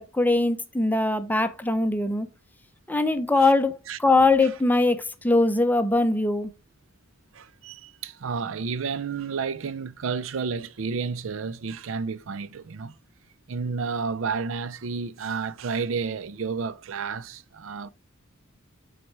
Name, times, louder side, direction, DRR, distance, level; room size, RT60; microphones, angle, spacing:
voice 1, 0.0-2.3 2.9-6.5, left 2 dB, 10° left, 0.6 m, -22 dB
voice 2, 7.3-12.9 13.5-17.9, right 5 dB, 70° right, 0.5 m, -31 dB
7.6 x 4.1 x 4.7 m
head